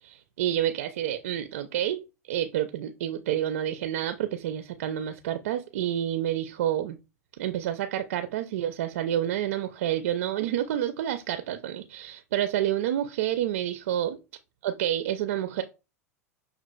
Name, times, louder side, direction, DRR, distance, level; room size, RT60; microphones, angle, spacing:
voice 1, 0.0-7.0 7.4-14.2 14.6-15.6, right 11 dB, 60° right, 0.4 m, -29 dB
6.1 x 2.4 x 2.2 m
figure-of-eight pair, 80°, 9 cm